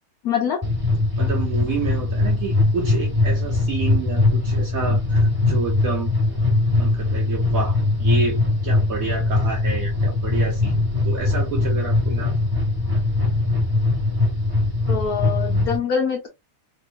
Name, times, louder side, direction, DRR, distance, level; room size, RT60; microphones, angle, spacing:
voice 1, 0.2-0.6 14.9-16.3, left 7 dB, 75° left, 0.8 m, -24 dB
sound 1, 0.6-15.8, left 2 dB, 10° right, 1.2 m, -21 dB
voice 2, 1.2-6.1 6.8-10.8 11.0-12.3, right 4 dB, 60° right, 1.0 m, -29 dB
3.8 x 3.1 x 2.5 m
omnidirectional pair, 2.4 m